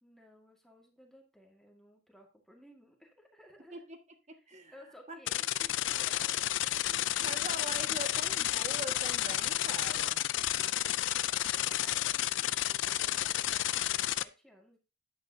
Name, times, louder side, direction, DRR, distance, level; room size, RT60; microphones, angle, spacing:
voice 1, 0.0-3.9 4.3-4.4 4.7-7.1 10.3-14.8, left 1 dB, ahead, 0 dB, 1.9 m, -58 dB
voice 2, 4.3-4.7 5.1-5.2 6.9-10.2, right 2 dB, 40° right, 5 dB, 1.7 m, -43 dB
sound 1, 5.3-14.2, left 13 dB, 90° left, 0.4 m, -31 dB
10.0 x 8.2 x 2.8 m, 0.30 s
head